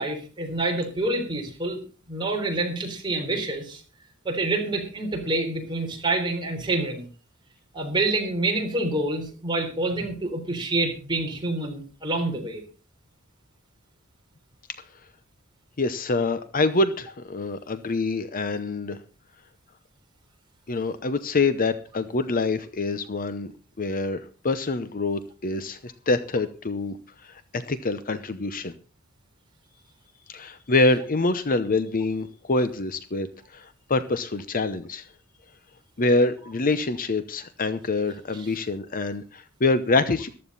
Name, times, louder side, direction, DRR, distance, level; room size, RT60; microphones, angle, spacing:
voice 1, 0.0-1.8 2.1-3.8 4.2-7.1 7.7-12.6 38.3-38.6, right 2 dB, 20° right, 1 dB, 3.8 m, -27 dB
voice 2, 15.8-19.0 20.7-23.5 23.8-26.9 27.5-28.7 30.3-33.3 33.5-35.0 36.0-40.3, left 3 dB, 40° left, 12 dB, 0.8 m, -25 dB
14.5 x 12.0 x 4.1 m, 0.36 s
head